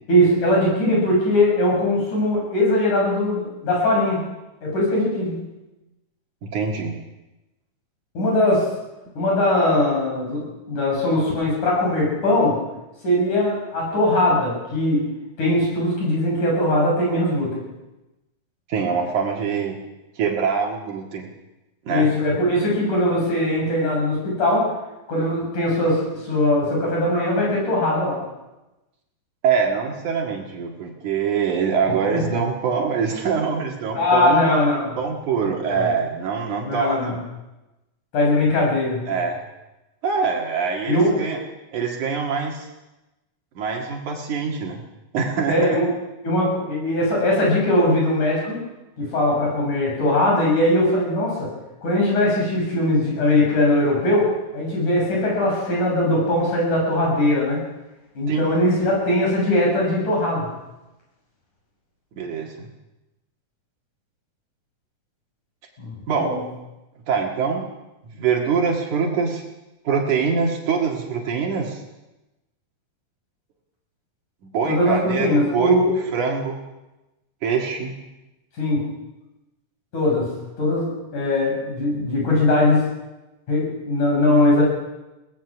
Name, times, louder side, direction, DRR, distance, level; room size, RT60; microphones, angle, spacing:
voice 1, 0.1-4.3 4.6-5.5 8.1-8.7 9.2-12.6 13.0-15.0 15.4-17.6 21.9-24.7 25.1-28.2 32.1-32.2 33.9-35.0 35.4-35.9 36.6-37.1 38.1-39.0 40.9-41.1 45.5-45.9 46.2-48.6 49.0-51.5 51.8-57.6 58.1-60.5 65.8-66.4 74.6-75.9 78.6-78.8 79.9-80.3 80.6-82.9 83.5-84.6, left 1 dB, 75° left, -2 dB, 8.3 m, -20 dB
voice 2, 6.4-6.9 18.7-19.8 20.2-21.3 21.9-22.1 29.4-34.4 35.0-37.2 39.1-39.4 40.0-41.4 41.7-42.7 43.6-44.8 45.1-45.6 58.3-58.5 62.1-62.5 66.1-66.3 67.1-67.7 68.0-69.4 69.8-71.8 74.5-75.8 76.1-76.6 77.4-77.9, right 6 dB, 75° right, 0 dB, 3.3 m, -24 dB
23.0 x 18.5 x 6.1 m, 1.0 s
omnidirectional pair, 3.5 m